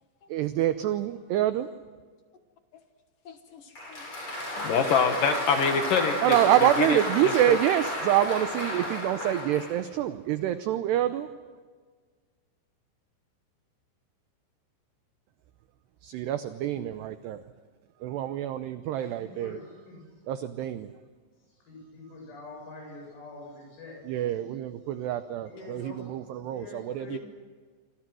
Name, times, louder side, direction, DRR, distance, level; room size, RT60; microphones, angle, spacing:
voice 1, 0.3-1.7 6.2-11.3 16.0-17.4 18.0-19.6 20.3-20.9 24.0-27.2, right 12 dB, 85° right, 10 dB, 2.4 m, -26 dB
voice 2, 3.3-3.6 3.9-4.1 4.6-6.4 6.8-7.0 7.2-7.6 27.1-27.2, left 6 dB, 70° left, 7 dB, 2.1 m, -26 dB
Applause, 3.8-9.8, left 1 dB, 25° left, 8.3 m, -32 dB
voice 3, 19.2-19.6 19.9-20.0 21.7-24.0 25.5-26.0 26.5-27.2, left 3 dB, 85° left, 0 dB, 10.5 m, -44 dB
26.5 x 26.0 x 6.3 m, 1.5 s
omnidirectional pair, 5.9 m